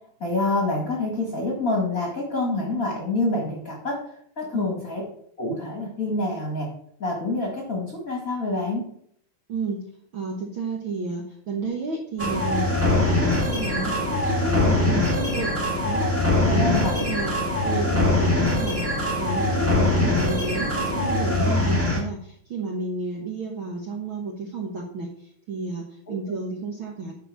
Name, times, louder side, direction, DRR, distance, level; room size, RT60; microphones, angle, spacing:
voice 1, 0.2-4.0 4.4-5.0 5.4-6.7 7.0-8.8 16.5-17.0 26.1-26.2, left 2 dB, 35° left, 0 dB, 1.4 m, -26 dB
voice 2, 9.5-9.9 10.1-15.6 15.8-17.3 17.6-27.2, right 4 dB, 85° right, 0 dB, 1.1 m, -31 dB
sound 1, 12.2-22.0, left 2 dB, 10° right, 0.8 m, -22 dB
9.7 x 4.9 x 6.2 m, 0.64 s
omnidirectional pair, 4.1 m